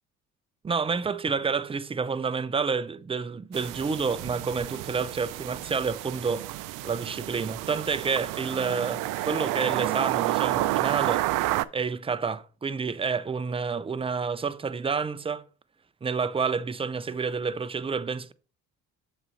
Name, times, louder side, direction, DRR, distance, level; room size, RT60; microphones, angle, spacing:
voice 1, 0.6-6.5 6.8-11.3 11.7-15.4 16.0-18.3, right 5 dB, 15° right, 0.5 m, -29 dB
sound 1, 3.5-11.7, right 17 dB, 75° right, 0.5 m, -30 dB
7.4 x 4.2 x 5.2 m
supercardioid pair, 80°, 32 cm